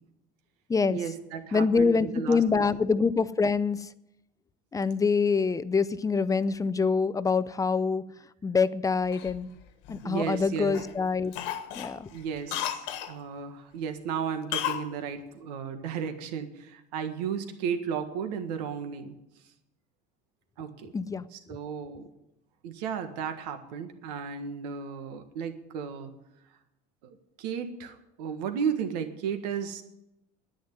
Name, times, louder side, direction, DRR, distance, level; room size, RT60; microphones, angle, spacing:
voice 1, 0.9-2.8 10.0-10.8 12.1-19.2 20.6-20.9 21.3-22.1 22.6-26.1 27.4-29.8, right 7 dB, 80° right, 1.7 m, -34 dB
voice 2, 1.5-3.9 4.7-8.1 8.4-9.5 9.9-11.3 11.8-12.1 20.9-21.3, left 5 dB, 15° left, 0.5 m, -25 dB
Cough, 9.1-10.4 10.7-11.0 11.3-13.1 14.5-14.9 15.1-15.2, left 11 dB, 65° left, 1.5 m, -34 dB
10.5 x 9.6 x 9.6 m
supercardioid pair, 105°, 20 cm